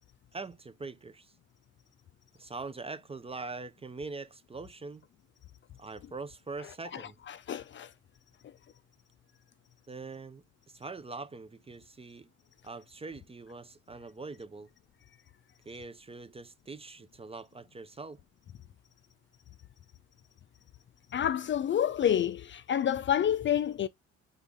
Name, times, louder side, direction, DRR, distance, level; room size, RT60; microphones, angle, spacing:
voice 1, 0.3-1.3 2.4-5.0 5.8-7.2 9.9-12.3 12.6-14.7 15.7-18.2, right 3 dB, 20° right, 0.5 m, -43 dB
voice 2, 7.3-7.9 21.1-23.9, left 9 dB, 40° left, 0.4 m, -28 dB
3.9 x 3.7 x 3.4 m
cardioid pair, 90°, 30 cm